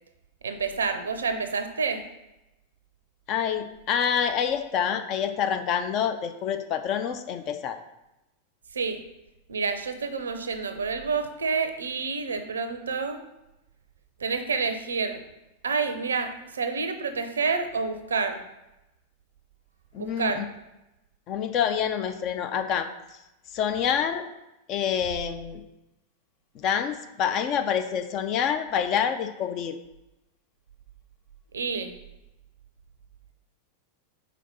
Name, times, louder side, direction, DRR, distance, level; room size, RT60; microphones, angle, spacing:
voice 1, 0.4-2.0 8.7-9.0 9.5-13.2 14.2-15.2 15.6-18.4 20.0-20.5 31.5-31.9, right 5 dB, 70° right, 8 dB, 0.6 m, -28 dB
voice 2, 3.3-7.8 19.9-20.4 21.3-22.9 23.5-24.3 24.7-25.6 26.6-29.8, left 8 dB, 40° left, 8 dB, 0.5 m, -27 dB
5.1 x 3.9 x 5.6 m, 0.94 s
figure-of-eight pair, 90°, 0 cm